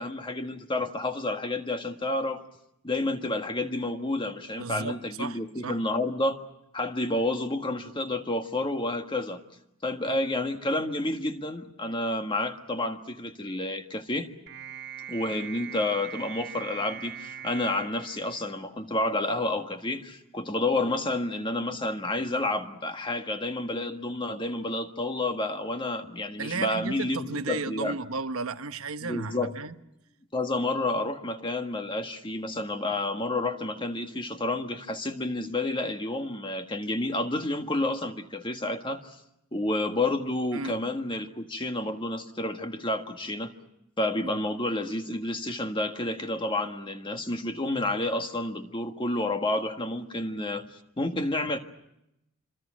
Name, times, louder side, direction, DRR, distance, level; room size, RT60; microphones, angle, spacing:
voice 1, 0.0-2.4 2.8-6.4 6.7-9.4 9.8-14.3 15.1-28.0 29.0-29.5 30.3-39.2 39.5-43.5 44.0-50.6 51.0-51.6, left 2 dB, 25° left, 1.6 m, -30 dB
voice 2, 4.6-5.8 10.1-10.2 26.4-29.7 40.5-40.8 44.2-44.4, right 4 dB, 90° right, 1.1 m, -34 dB
sound 1, 14.5-19.0, right 9 dB, 55° right, 1.4 m, -42 dB
26.0 x 26.0 x 6.3 m
head